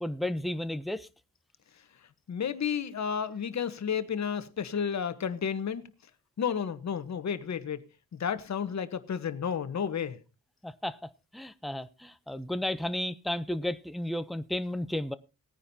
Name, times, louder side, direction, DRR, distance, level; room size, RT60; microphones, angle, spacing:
voice 1, 0.0-1.1 10.6-11.0 11.3-15.1, left 1 dB, ahead, 0.5 m, -33 dB
voice 2, 2.3-5.8 6.4-7.8 8.1-10.2, left 7 dB, 50° left, 1.2 m, -32 dB
19.5 x 10.0 x 2.7 m
wide cardioid pair, 140°, 36 cm